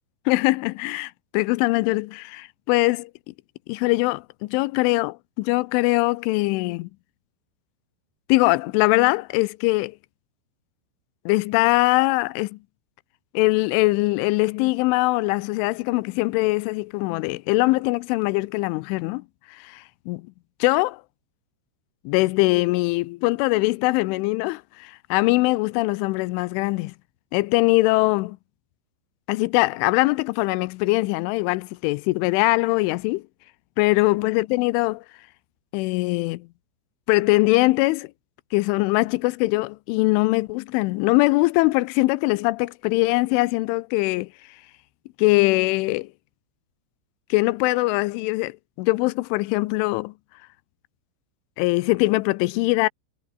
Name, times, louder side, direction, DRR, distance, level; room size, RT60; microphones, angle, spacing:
voice 1, 0.3-3.0 3.7-6.9 8.3-10.0 11.3-12.6 13.3-20.3 20.6-21.0 22.1-26.9 27.3-28.4 29.3-33.2 33.8-35.0 35.7-36.5 37.1-38.1 38.5-44.3 45.2-46.1 47.3-50.1 51.6-52.9, left 22 dB, 85° left, 3.0 m, -22 dB
omnidirectional pair, 5.9 m